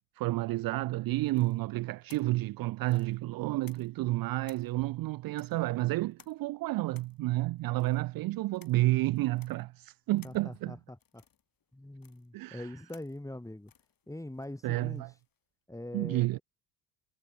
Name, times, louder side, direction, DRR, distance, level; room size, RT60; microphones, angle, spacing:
voice 1, 0.2-10.8 12.3-12.7 14.6-15.1 15.9-16.4, right 18 dB, 45° right, 0.7 m, -30 dB
sound 1, 1.3-4.1 4.4-15.4, left 8 dB, 40° left, 6.0 m, -62 dB
voice 2, 10.2-11.2 11.7-13.7 14.1-15.0 15.7-16.4, left 1 dB, 5° left, 5.1 m, -43 dB
hypercardioid pair, 55°, 50 cm